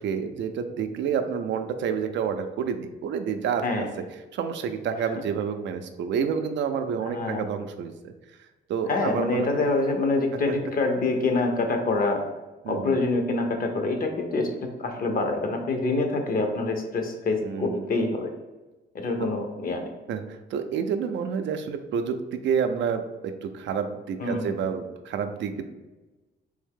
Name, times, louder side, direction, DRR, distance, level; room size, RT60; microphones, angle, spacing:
voice 1, 0.0-3.9 4.3-8.1 8.7-9.7 10.5-10.6 12.6-13.0 17.4-17.9 19.2-19.3 20.1-25.6, right 7 dB, 70° right, 7 dB, 0.4 m, -29 dB
voice 2, 7.0-7.4 8.9-12.2 12.7-14.5 14.8-18.3 18.9-19.9 24.2-24.5, left 3 dB, 45° left, 4 dB, 0.7 m, -26 dB
3.4 x 2.7 x 3.6 m, 1.1 s
cardioid pair, 90°, 20 cm